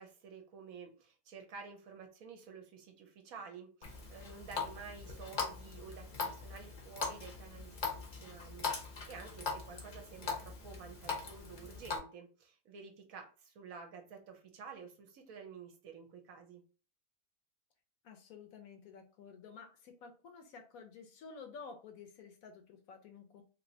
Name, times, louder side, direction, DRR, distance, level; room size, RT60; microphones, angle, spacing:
voice 1, 0.0-16.6, right 5 dB, 65° right, 4 dB, 1.0 m, -51 dB
Water tap faucet, 3.8-12.0, left 5 dB, 45° left, 0.7 m, -41 dB
voice 2, 18.0-23.4, left 5 dB, 70° left, 5 dB, 1.0 m, -52 dB
3.1 x 2.8 x 2.6 m, 0.37 s
omnidirectional pair, 1.7 m